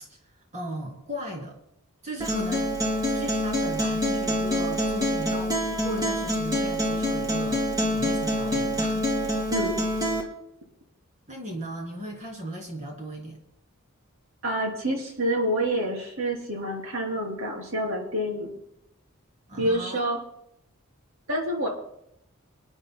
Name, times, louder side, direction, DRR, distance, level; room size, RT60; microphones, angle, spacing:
voice 1, 0.5-1.6 2.0-9.1 11.3-13.4 19.5-20.1, equal, 35° right, 1 dB, 2.8 m, -37 dB
Acoustic guitar, 2.2-10.2, equal, 15° right, 2.2 m, -26 dB
voice 2, 9.5-9.8 14.4-18.6 19.6-20.2 21.3-21.7, right 1 dB, 70° right, 0 dB, 3.6 m, -27 dB
27.0 x 9.8 x 2.3 m, 0.78 s
head